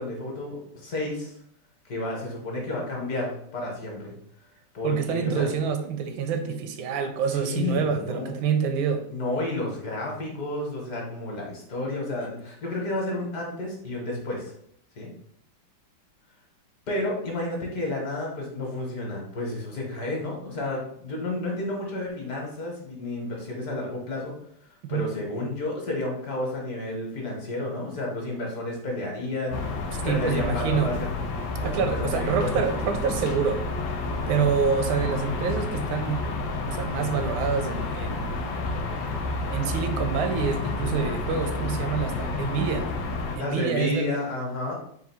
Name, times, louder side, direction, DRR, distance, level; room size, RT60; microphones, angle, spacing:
voice 1, 0.0-1.3 1.8-4.1 4.7-5.5 7.3-8.3 9.1-14.5 15.0-15.1 16.9-24.3 24.6-29.6 30.0-31.1 31.6-32.6 43.4-44.7, left 2 dB, 55° left, -1 dB, 1.3 m, -31 dB
voice 2, 4.8-9.1 24.9-25.1 30.0-30.9 31.6-33.7 34.3-36.2 36.7-38.5 39.5-42.9 43.4-44.2, right 6 dB, 80° right, 8 dB, 1.3 m, -27 dB
sound 1, 29.5-43.4, left 3 dB, 85° left, 1.4 m, -30 dB
3.8 x 2.5 x 4.2 m, 0.68 s
omnidirectional pair, 2.1 m